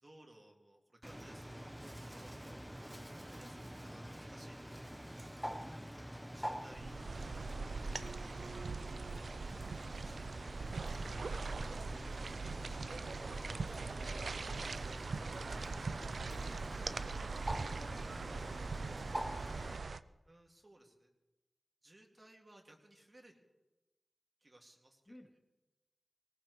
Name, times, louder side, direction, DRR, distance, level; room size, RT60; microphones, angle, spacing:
voice 1, 0.0-2.7 3.2-5.0 6.1-8.5 9.7-11.1 20.2-21.1 21.8-23.4 24.4-25.1, right 1 dB, 35° right, 1 dB, 2.3 m, -62 dB
Bird, 1.0-19.8, equal, 5° right, 0.8 m, -46 dB
voice 2, 5.5-6.0 11.9-12.1 15.7-18.8 25.1-25.3, left 1 dB, 20° left, 5 dB, 0.9 m, -57 dB
sound 1, 6.7-20.0, right 4 dB, 85° right, 0.4 m, -41 dB
20.0 x 18.5 x 3.2 m, 1.1 s
wide cardioid pair, 80°, 0 cm